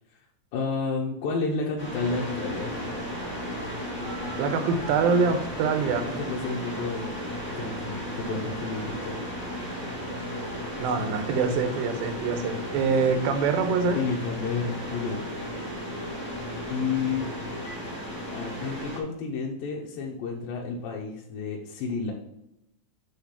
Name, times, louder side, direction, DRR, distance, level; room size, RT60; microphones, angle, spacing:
voice 1, 0.5-2.7 6.2-7.1 7.6-9.2 13.9-15.2 16.7-17.3 18.3-22.1, left 4 dB, 85° left, -2 dB, 2.7 m, -31 dB
sound 1, 1.8-19.0, equal, 5° left, 1.0 m, -35 dB
Telephone, 2.1-5.2 9.6-17.8, left 3 dB, 60° left, 2.8 m, -45 dB
voice 2, 4.4-6.1 10.8-14.0, right 5 dB, 85° right, 7 dB, 2.6 m, -25 dB
8.2 x 3.3 x 5.8 m, 0.85 s
omnidirectional pair, 4.1 m